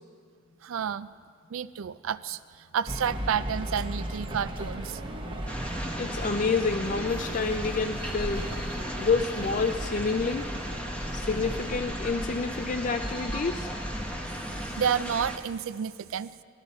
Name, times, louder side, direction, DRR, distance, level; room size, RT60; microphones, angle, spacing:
voice 1, 0.6-1.1 1.5-5.0 14.8-16.4, right 8 dB, 75° right, 16 dB, 0.4 m, -30 dB
sound 1, 2.9-14.7, right 1 dB, 25° right, 0.8 m, -37 dB
sound 2, 4.5-13.1, right 2 dB, 55° right, 0.9 m, -49 dB
sound 3, 5.5-15.4, equal, 5° left, 0.9 m, -36 dB
voice 2, 6.0-8.5 9.0-10.4 11.1-13.7, left 4 dB, 40° left, 5 dB, 0.4 m, -28 dB
18.5 x 13.0 x 4.2 m, 2.1 s
head